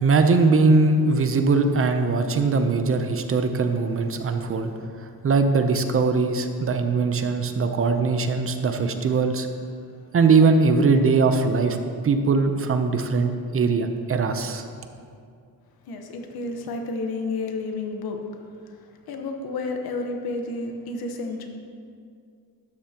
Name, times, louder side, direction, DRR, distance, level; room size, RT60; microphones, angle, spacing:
voice 1, 0.0-4.7 5.0-9.5 10.1-11.8 12.0-14.6, right 4 dB, 35° right, 7 dB, 0.7 m, -21 dB
voice 2, 15.9-18.2 18.6-18.8 19.1-21.5, left 3 dB, 75° left, 3 dB, 1.3 m, -31 dB
12.5 x 10.5 x 2.9 m, 2.3 s
cardioid pair, 150°, 37 cm